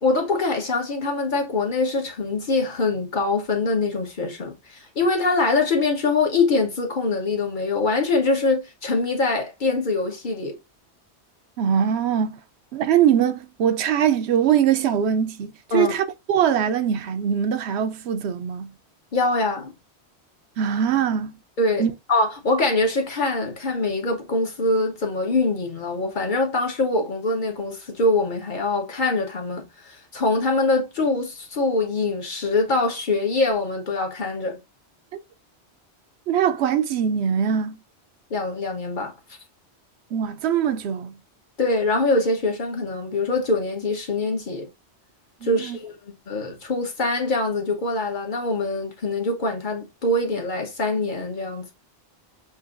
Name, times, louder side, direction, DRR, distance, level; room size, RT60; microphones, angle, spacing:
voice 1, 0.0-10.5 15.7-15.9 19.1-19.7 21.6-21.8 22.1-34.6 38.3-39.1 41.6-44.7 45.4-51.7, left 3 dB, 45° left, 1.2 m, -24 dB
voice 2, 11.6-12.4 12.7-18.7 20.6-21.3 21.8-21.9 36.3-37.8 40.1-41.2 45.4-45.8, right 8 dB, 75° right, 0.8 m, -22 dB
7.2 x 2.6 x 2.4 m
omnidirectional pair, 1.1 m